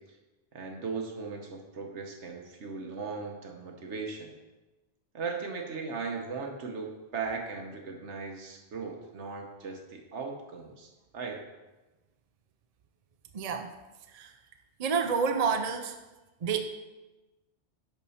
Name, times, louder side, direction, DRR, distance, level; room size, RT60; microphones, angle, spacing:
voice 1, 0.5-4.4 5.1-11.4, right 4 dB, 75° right, 2 dB, 1.3 m, -38 dB
voice 2, 13.3-13.7 14.1-14.3 14.8-16.0 16.4-16.6, right 6 dB, 45° right, 6 dB, 0.5 m, -28 dB
10.5 x 4.2 x 5.6 m, 1.1 s
omnidirectional pair, 1.2 m